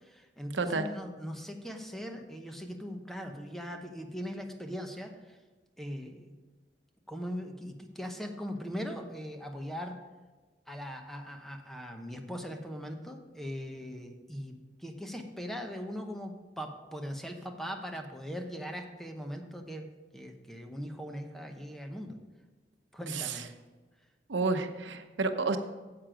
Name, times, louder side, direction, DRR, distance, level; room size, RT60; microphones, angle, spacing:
voice 1, 0.0-5.4 5.8-6.3 7.1-10.0 10.7-22.2 22.9-23.5, equal, ahead, 4 dB, 0.8 m, -40 dB
voice 2, 0.5-0.9 23.1-23.4 24.3-25.6, right 4 dB, 85° right, 7 dB, 0.8 m, -30 dB
9.5 x 7.7 x 5.0 m, 1.3 s
head